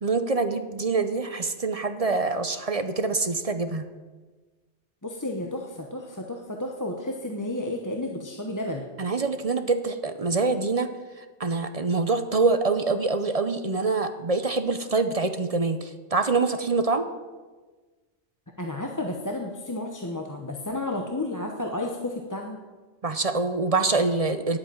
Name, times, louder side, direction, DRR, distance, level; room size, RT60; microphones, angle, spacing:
voice 1, 0.0-3.8 9.0-10.9 11.4-17.1 23.0-24.6, right 3 dB, 35° right, 9 dB, 0.6 m, -25 dB
voice 2, 5.0-8.9 18.6-22.6, left 1 dB, 15° left, 1 dB, 1.0 m, -32 dB
10.0 x 8.8 x 8.9 m, 1.3 s
omnidirectional pair, 1.3 m